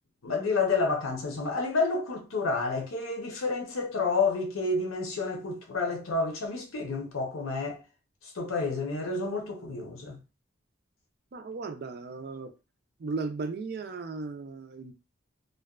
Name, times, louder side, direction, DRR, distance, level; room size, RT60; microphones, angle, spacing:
voice 1, 0.2-7.8 8.3-10.2, left 3 dB, 90° left, 0.7 m, -29 dB
voice 2, 11.3-12.5 13.0-14.9, right 4 dB, 50° right, 0.3 m, -36 dB
2.5 x 2.2 x 2.3 m
head